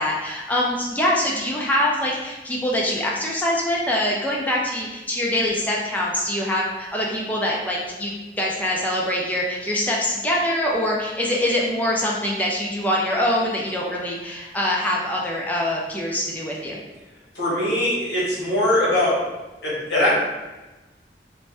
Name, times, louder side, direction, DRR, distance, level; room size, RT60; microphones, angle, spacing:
voice 1, 0.0-16.8, left 1 dB, 10° left, -3 dB, 0.4 m, -24 dB
voice 2, 17.3-19.2 19.6-20.1, left 1 dB, 80° left, -7 dB, 1.1 m, -21 dB
2.6 x 2.1 x 3.3 m, 1.1 s
head